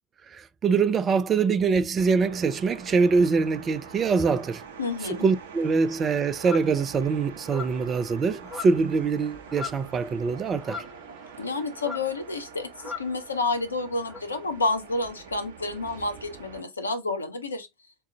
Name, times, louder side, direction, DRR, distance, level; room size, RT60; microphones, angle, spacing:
voice 1, 0.3-4.6 5.2-10.8, right 5 dB, 30° right, 0.5 m, -24 dB
sound 1, 2.0-16.6, right 6 dB, 70° right, 0.8 m, -45 dB
voice 2, 4.8-5.3 11.4-17.7, left 3 dB, 80° left, 0.6 m, -29 dB
sound 2, 6.4-6.7 7.4-7.9 8.4-9.0 9.2-9.9 10.6-11.5 11.8-12.2 12.8-13.2 14.1-14.2, left 5 dB, 5° left, 1.2 m, -38 dB
3.7 x 2.3 x 3.9 m
figure-of-eight pair, 70°, 0 cm